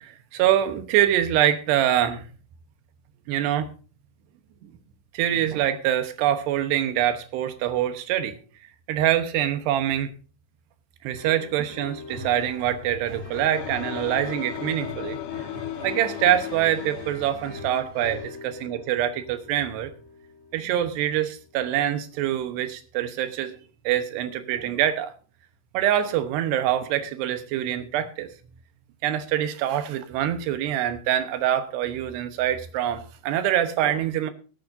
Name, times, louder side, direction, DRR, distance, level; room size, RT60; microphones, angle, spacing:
voice 1, 0.0-2.2 3.3-3.7 5.1-8.4 8.9-10.1 11.0-15.2 15.8-19.9 20.5-23.5 23.8-25.1 25.7-28.3 29.0-34.3, right 11 dB, 75° right, 9 dB, 3.0 m, -25 dB
sound 1, 11.2-21.6, left 4 dB, 50° left, 8.2 m, -44 dB
sound 2, 12.1-18.4, left 1 dB, 30° right, 2.7 m, -41 dB
sound 3, 13.5-17.3, left 12 dB, 75° left, 2.5 m, -35 dB
22.5 x 8.5 x 2.6 m, 0.37 s
omnidirectional pair, 5.1 m